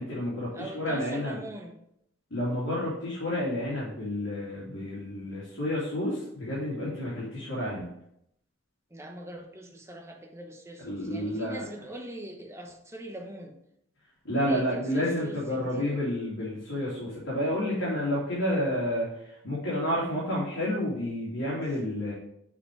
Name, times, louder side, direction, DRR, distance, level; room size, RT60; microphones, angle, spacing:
voice 1, 0.0-1.4 2.3-7.9 10.8-11.6 14.2-22.1, left 1 dB, 85° left, -8 dB, 2.8 m, -30 dB
voice 2, 0.5-1.7 8.9-13.5 14.3-15.8, right 1 dB, 15° right, 1 dB, 1.0 m, -42 dB
7.2 x 4.6 x 4.9 m, 0.75 s
head